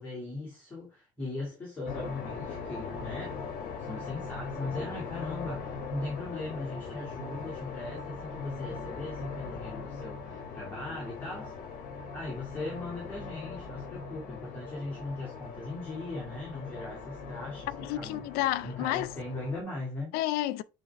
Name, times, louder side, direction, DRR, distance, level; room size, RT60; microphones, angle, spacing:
voice 1, 0.0-3.4 3.8-11.7 12.1-18.2 18.6-20.2, left 2 dB, 10° left, 2.6 m, -39 dB
sound 1, 1.9-19.6, left 4 dB, 55° left, 1.3 m, -40 dB
voice 2, 17.8-19.1 20.1-20.6, left 15 dB, 75° left, 0.4 m, -30 dB
8.6 x 3.6 x 3.2 m
cardioid pair, 175°, 16 cm